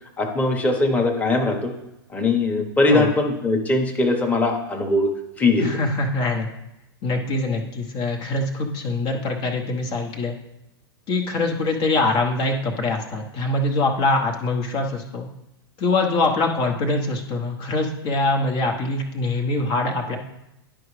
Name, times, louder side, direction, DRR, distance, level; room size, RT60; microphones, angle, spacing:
voice 1, 0.2-1.7 2.1-5.1 5.4-5.7, left 2 dB, 10° left, 1 dB, 1.1 m, -20 dB
voice 2, 5.6-6.5 7.0-10.3 11.1-15.3 15.8-20.2, left 2 dB, 45° left, 2 dB, 1.0 m, -23 dB
10.5 x 4.9 x 3.2 m, 0.88 s
hypercardioid pair, 105°, 13 cm